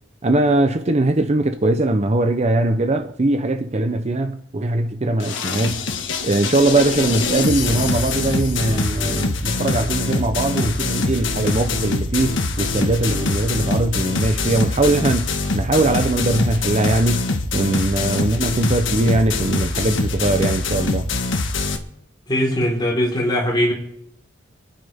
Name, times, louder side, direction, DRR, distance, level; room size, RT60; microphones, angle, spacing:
voice 1, 0.2-5.9 6.2-21.1, right 2 dB, 35° right, 0.7 m, -20 dB
sound 1, 5.2-21.8, left 3 dB, 75° left, 1.5 m, -23 dB
voice 2, 22.3-23.7, equal, 25° left, 4.2 m, -20 dB
27.5 x 10.0 x 3.6 m
head